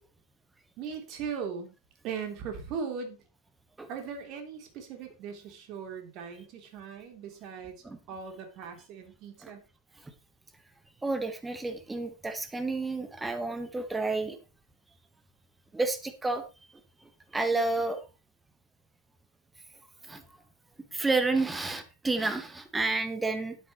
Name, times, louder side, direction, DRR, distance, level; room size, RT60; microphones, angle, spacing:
voice 1, 0.8-1.7 2.0-3.2 3.9-9.7, right 6 dB, 40° right, 4 dB, 3.2 m, -39 dB
voice 2, 11.0-14.4 15.7-16.4 17.3-18.0 20.1-20.2 20.9-23.6, right 3 dB, 10° right, 9 dB, 1.4 m, -30 dB
12.0 x 9.8 x 3.1 m, 0.30 s
figure-of-eight pair, 90°, 0 cm